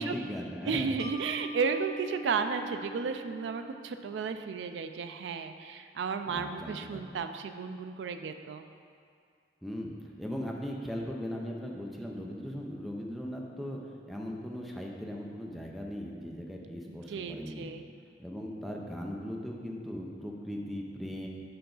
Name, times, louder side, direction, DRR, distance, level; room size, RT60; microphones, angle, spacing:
voice 1, 0.0-1.0 6.3-7.0 9.6-13.8 14.1-17.7 18.2-21.3, equal, ahead, -1 dB, 0.5 m, -38 dB
voice 2, 0.6-8.6 16.9-17.9, right 5 dB, 80° right, 8 dB, 0.3 m, -33 dB
Mallet percussion, 1.0-4.3, right 2 dB, 20° left, 0.9 m, -43 dB
6.8 x 4.6 x 3.9 m, 2.3 s
head